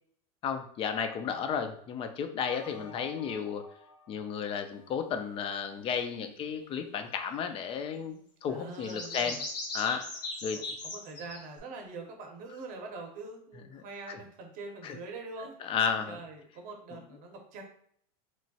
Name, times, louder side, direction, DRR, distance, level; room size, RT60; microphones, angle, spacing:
voice 1, 0.4-3.6 4.1-9.4 9.7-10.1 10.4-10.6 13.7-14.2 14.8-15.0 15.6-16.2, left 7 dB, 30° left, 7 dB, 0.4 m, -33 dB
sound 1, 2.4-5.6, left 2 dB, 50° left, 0.8 m, -53 dB
sound 2, 7.4-7.5 8.7-11.6, left 2 dB, 90° left, 0.8 m, -38 dB
voice 2, 8.5-9.4 10.5-15.7 16.1-17.6, right 3 dB, 40° right, 2 dB, 0.8 m, -44 dB
3.0 x 2.2 x 2.7 m, 0.64 s
supercardioid pair, 120°, 20 cm